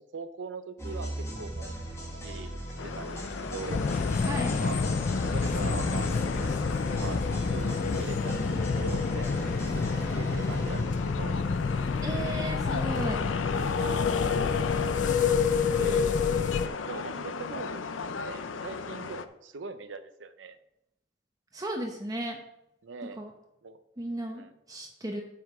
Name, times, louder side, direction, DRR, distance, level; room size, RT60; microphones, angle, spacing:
voice 1, 0.1-2.5 2.8-3.2 3.5-3.8 4.6-4.8 5.3-6.7 7.0-7.2 7.5-9.8 10.1-11.4 13.8-15.0 15.7-17.8 18.2-20.6 22.8-23.2 23.6-23.8 24.3-24.5, right 4 dB, 75° right, 10 dB, 0.6 m, -41 dB
sound 1, 0.8-12.5, equal, 15° left, 1.8 m, -38 dB
sound 2, 2.8-19.2, left 5 dB, 90° left, 0.6 m, -36 dB
sound 3, 3.7-16.7, left 5 dB, 40° left, 0.3 m, -28 dB
voice 2, 4.2-4.6 12.0-13.3 21.5-22.4 23.2-23.3 24.0-25.2, right 1 dB, 20° right, 1 dB, 0.9 m, -35 dB
7.4 x 5.7 x 6.0 m, 0.83 s
head